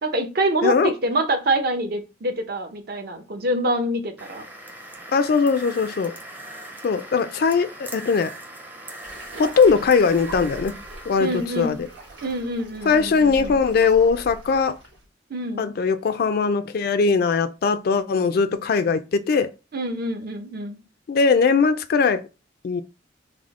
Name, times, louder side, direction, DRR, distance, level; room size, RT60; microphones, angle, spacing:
voice 1, 0.0-4.4 11.2-11.8 12.2-13.5 15.3-15.7 19.7-20.8, right 1 dB, 55° right, 0.6 m, -26 dB
sound 1, 4.2-12.4, right 1 dB, 10° right, 0.5 m, -40 dB
voice 2, 5.1-6.1 6.8-8.3 9.4-10.7 11.1-11.3 11.6-11.9 12.8-14.7 15.6-19.5 21.1-22.2 22.6-22.8, left 5 dB, 55° left, 0.3 m, -20 dB
sound 2, 9.0-15.1, right 1 dB, 70° right, 1.3 m, -41 dB
3.5 x 2.0 x 3.6 m
head